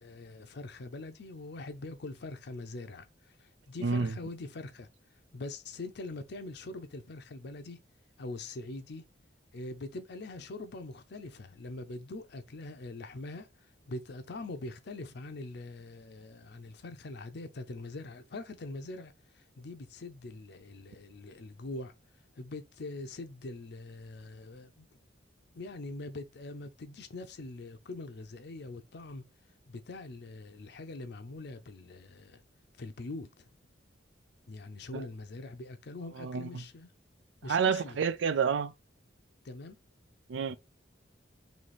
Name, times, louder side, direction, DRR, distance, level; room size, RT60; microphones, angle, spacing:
voice 1, 0.0-4.9 5.3-7.8 8.2-9.0 9.5-13.5 13.9-21.9 22.4-24.9 25.5-29.2 29.7-32.4 32.8-33.5 34.5-36.9 37.4-38.0 39.4-39.8, left 2 dB, 65° left, 0.6 m, -43 dB
voice 2, 3.8-4.1 34.9-35.0 36.2-36.6 37.4-38.7 40.3-40.6, right 6 dB, 80° right, 0.4 m, -29 dB
3.2 x 2.9 x 4.1 m
head